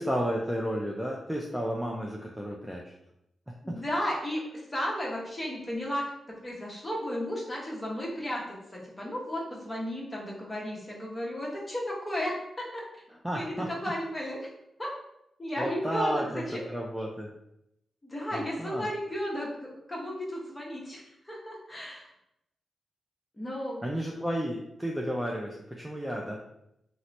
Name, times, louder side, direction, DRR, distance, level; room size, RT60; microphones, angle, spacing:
voice 1, 0.0-2.9 3.7-3.8 13.2-13.7 15.6-17.3 18.3-18.9 23.8-26.4, equal, 5° right, -2 dB, 0.4 m, -32 dB
voice 2, 3.6-6.1 6.4-13.0 13.3-14.5 14.8-14.9 15.4-16.6 18.0-22.1 23.4-23.8, equal, 20° left, -3 dB, 1.0 m, -34 dB
2.9 x 2.0 x 4.0 m, 0.80 s
cardioid pair, 100°, 0 cm